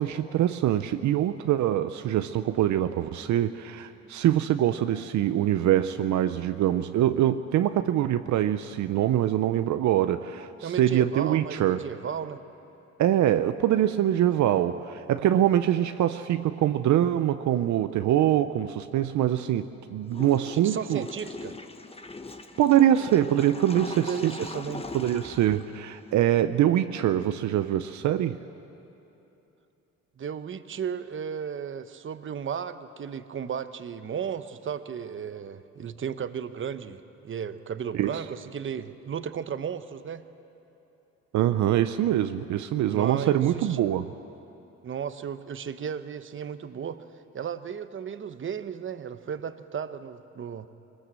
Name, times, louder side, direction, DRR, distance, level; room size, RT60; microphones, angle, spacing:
voice 1, 0.0-11.8 13.0-21.0 22.6-24.3 24.9-28.4 37.9-38.2 41.3-44.1, right 12 dB, 70° right, 10 dB, 0.6 m, -24 dB
voice 2, 10.6-12.4 20.5-21.5 24.0-24.8 30.2-40.2 42.9-43.8 44.8-47.0 47.3-50.7, right 7 dB, 40° right, 12 dB, 0.9 m, -34 dB
Water / Toilet flush, 20.1-26.3, left 3 dB, 20° left, 1.0 m, -41 dB
21.5 x 20.0 x 7.6 m, 2.9 s
cardioid pair, 90°, 30 cm